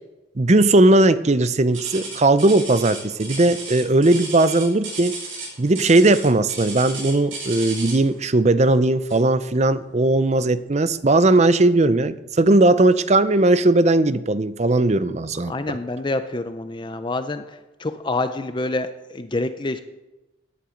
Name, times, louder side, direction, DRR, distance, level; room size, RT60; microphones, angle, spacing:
voice 1, 0.4-5.1 5.6-15.8, right 2 dB, 35° right, 14 dB, 0.6 m, -18 dB
sound 1, 1.7-8.1 9.1-9.3 9.9-10.0 10.7-10.8, right 4 dB, 80° right, 6.3 m, -34 dB
voice 2, 15.5-17.4 17.8-19.8, left 2 dB, 25° left, 9 dB, 0.5 m, -27 dB
18.0 x 10.0 x 5.1 m, 1.0 s
head